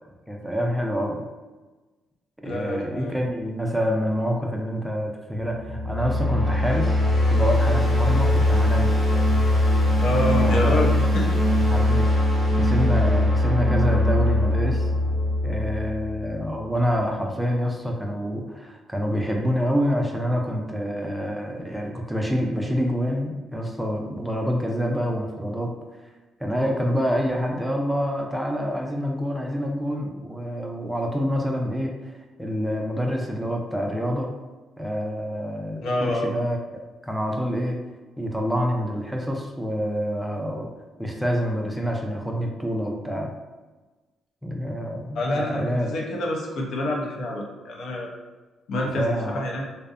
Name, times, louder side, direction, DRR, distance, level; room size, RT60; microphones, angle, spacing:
voice 1, 0.3-1.2 2.4-7.0 7.3-8.9 10.4-10.7 11.7-12.0 12.6-14.9 15.4-25.7 26.4-34.3 34.8-36.6 37.0-37.8 38.2-40.7 41.0-43.3 44.4-45.9 48.8-49.4, equal, ahead, 0 dB, 0.4 m, -27 dB
voice 2, 2.4-3.2 10.0-11.4 35.8-36.4 45.1-48.1 48.7-49.7, left 1 dB, 75° left, -1 dB, 0.5 m, -27 dB
sound 1, 5.6-16.6, left 1 dB, 40° left, 0.9 m, -21 dB
2.6 x 2.0 x 2.4 m, 1.2 s
cardioid pair, 90°, 0 cm